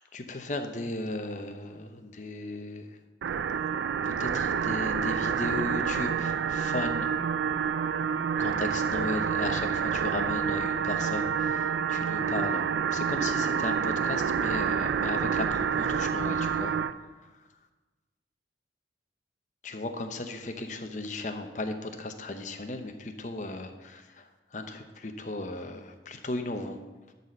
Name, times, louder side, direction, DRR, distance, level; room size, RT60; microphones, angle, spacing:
voice 1, 0.1-2.9 4.0-7.1 8.4-12.6 12.9-16.8 19.6-26.8, left 2 dB, 45° left, 7 dB, 0.8 m, -36 dB
sound 1, 3.2-16.9, right 7 dB, 85° right, 0.4 m, -28 dB
11.5 x 4.1 x 6.5 m, 1.2 s
head